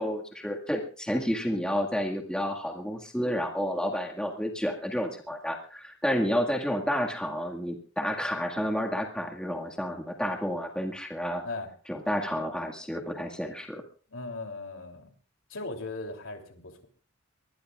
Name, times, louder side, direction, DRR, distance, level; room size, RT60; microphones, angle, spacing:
voice 1, 0.0-11.4 11.9-13.8, equal, 5° left, 0 dB, 1.9 m, -30 dB
voice 2, 14.1-15.1 15.5-16.9, left 3 dB, 80° left, 3 dB, 3.1 m, -38 dB
24.0 x 20.0 x 2.4 m, 0.41 s
head